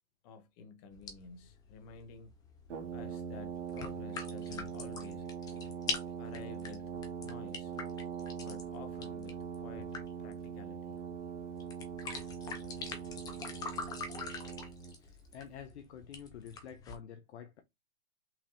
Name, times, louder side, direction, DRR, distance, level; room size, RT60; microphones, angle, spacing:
voice 1, 0.2-2.3 2.9-5.3 6.2-6.9 7.2-7.7 8.4-11.0, left 5 dB, 35° left, 1.0 m, -52 dB
sound 1, 0.9-17.0, left 4 dB, 10° left, 0.5 m, -45 dB
Brass instrument, 2.7-15.0, right 7 dB, 80° right, 1.9 m, -42 dB
voice 2, 14.9-17.6, left 8 dB, 70° left, 0.8 m, -49 dB
5.8 x 3.3 x 2.6 m
hypercardioid pair, 150°, 35 cm